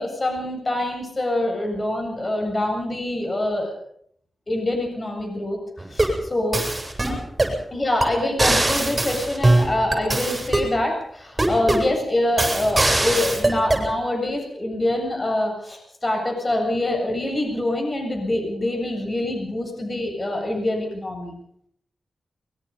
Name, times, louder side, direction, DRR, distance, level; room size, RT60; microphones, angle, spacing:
voice 1, 0.0-3.7 4.5-6.6 7.7-21.4, left 1 dB, 35° left, 3 dB, 7.5 m, -25 dB
sound 1, 5.8-6.2 6.5-7.6 8.0-8.1 8.4-10.7 11.4-11.9 12.4-13.9, right 2 dB, 25° right, 7.5 m, -21 dB
23.5 x 22.5 x 5.5 m, 0.67 s
cardioid pair, 70°, 0 cm